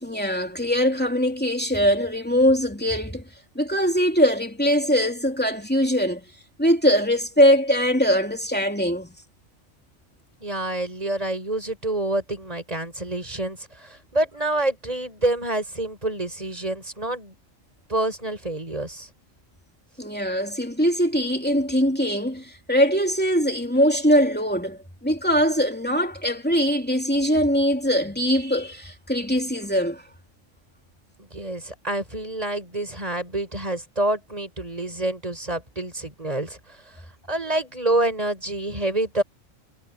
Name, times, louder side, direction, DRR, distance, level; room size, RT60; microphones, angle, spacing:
voice 1, 0.0-3.3 3.5-6.2 6.6-9.1 20.0-30.0, equal, 5° left, 3.0 m, -22 dB
voice 2, 10.4-17.3 17.9-19.1 31.2-37.0 37.3-39.2, right 1 dB, 30° right, 6.3 m, -27 dB
omnidirectional pair, 1.4 m